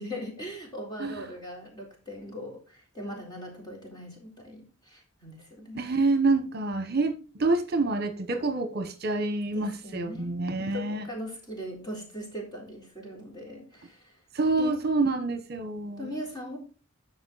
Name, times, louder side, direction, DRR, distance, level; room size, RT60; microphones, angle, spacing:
voice 1, 0.0-5.9 9.5-14.2 14.6-14.8 16.0-16.6, equal, 20° left, 3.9 m, -40 dB
voice 2, 5.7-11.1 14.3-16.1, right 3 dB, 50° right, 1.1 m, -27 dB
13.0 x 5.2 x 4.1 m
head